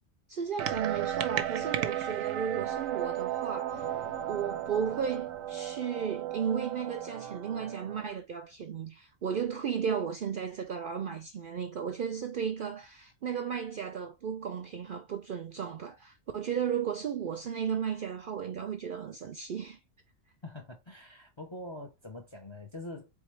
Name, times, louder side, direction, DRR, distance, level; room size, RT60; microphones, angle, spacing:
voice 1, 0.3-3.8 4.3-19.8, right 7 dB, 60° right, 0.5 m, -34 dB
sound 1, 0.6-8.1, right 11 dB, 85° right, 1.0 m, -34 dB
Thunder, 3.7-6.2, left 8 dB, 65° left, 0.9 m, -52 dB
voice 2, 20.4-23.1, left 1 dB, 35° left, 0.5 m, -44 dB
3.9 x 3.6 x 3.1 m
omnidirectional pair, 1.3 m